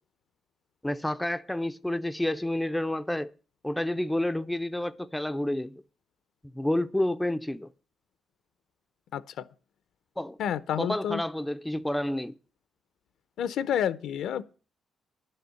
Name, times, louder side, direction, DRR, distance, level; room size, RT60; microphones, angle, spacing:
voice 1, 0.8-3.3 3.6-5.8 6.5-7.7 10.2-10.4 10.8-12.3, left 1 dB, 5° left, 0.5 m, -29 dB
voice 2, 9.1-9.4 10.4-11.2 13.4-14.4, left 9 dB, 75° left, 0.7 m, -29 dB
10.5 x 6.7 x 8.2 m
cardioid pair, 125°, 0 cm